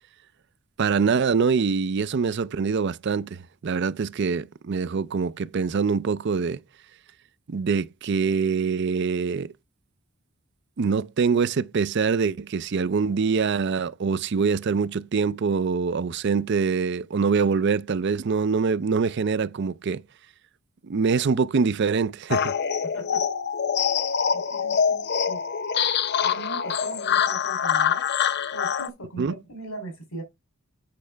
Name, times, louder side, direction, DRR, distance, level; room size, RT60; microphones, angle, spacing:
voice 1, 0.8-6.6 7.5-9.5 10.8-20.0 20.8-22.5 29.2-29.3, right 5 dB, 55° right, 0.4 m, -24 dB
sound 1, 22.3-28.9, left 7 dB, 50° left, 0.6 m, -25 dB
voice 2, 22.8-23.3 24.3-25.4 26.2-28.0 28.5-30.2, right 2 dB, 90° left, 3.2 m, -39 dB
8.5 x 5.6 x 3.3 m
head